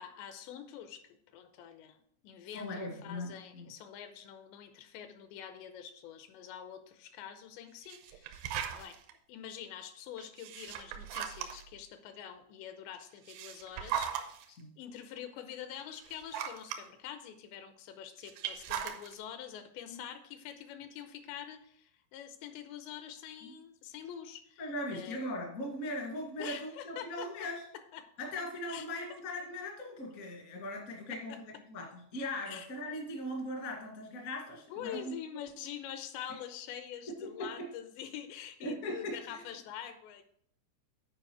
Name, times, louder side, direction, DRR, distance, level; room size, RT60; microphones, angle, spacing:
voice 1, 0.0-9.0 9.3-14.4 14.8-25.2 26.4-27.5 27.9-28.1 28.7-28.8 32.5-32.7 34.7-40.2, left 9 dB, 85° left, 8 dB, 2.9 m, -46 dB
voice 2, 2.4-3.7 14.5-14.7 19.9-20.0 23.4-23.5 24.6-27.6 28.2-31.4 31.7-35.4 37.2-37.7 38.6-39.4, left 1 dB, 60° left, 0 dB, 0.8 m, -39 dB
sound 1, 7.8-9.1 10.2-11.8 13.0-14.4 15.2-15.3 15.8-16.8 18.2-19.1, right 9 dB, 85° right, 2.7 m, -38 dB
9.8 x 4.8 x 4.6 m, 0.68 s
omnidirectional pair, 5.2 m